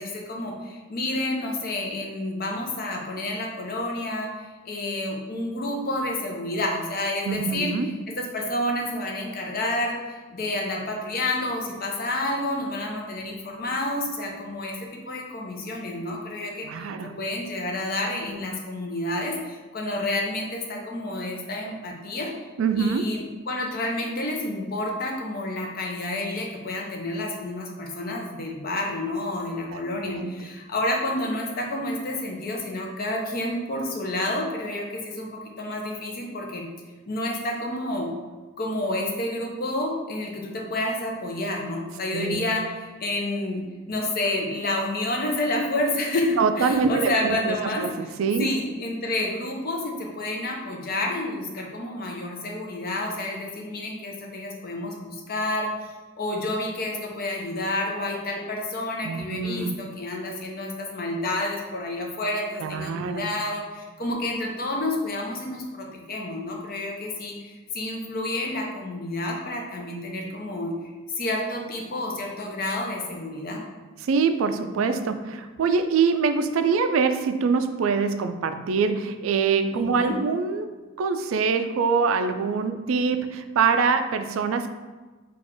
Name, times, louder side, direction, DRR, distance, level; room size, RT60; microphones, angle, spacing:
voice 1, 0.0-7.7 8.1-14.8 15.1-22.3 22.8-36.6 37.1-38.1 38.6-43.6 43.9-47.8 48.4-70.7 71.2-73.6 79.7-80.2, left 1 dB, 45° left, 0 dB, 0.7 m, -29 dB
voice 2, 7.2-7.9 16.6-17.1 22.6-23.1 29.7-30.3 42.1-42.4 46.4-48.5 59.0-59.8 62.6-63.3 74.0-84.7, right 5 dB, 75° right, 9 dB, 0.3 m, -24 dB
4.2 x 2.4 x 4.4 m, 1.3 s
head